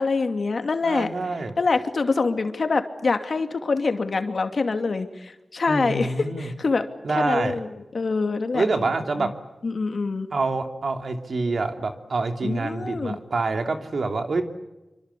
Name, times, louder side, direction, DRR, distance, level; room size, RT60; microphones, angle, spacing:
voice 1, 0.0-1.1 1.6-8.6 9.2-9.3 9.6-10.3 12.4-13.2, left 4 dB, 60° left, 7 dB, 2.5 m, -25 dB
voice 2, 0.8-1.5 5.7-6.5 7.0-7.5 8.5-9.3 10.3-14.4, right 3 dB, 65° right, 6 dB, 3.0 m, -26 dB
26.5 x 25.5 x 8.4 m, 1.0 s
wide cardioid pair, 80°, 0 cm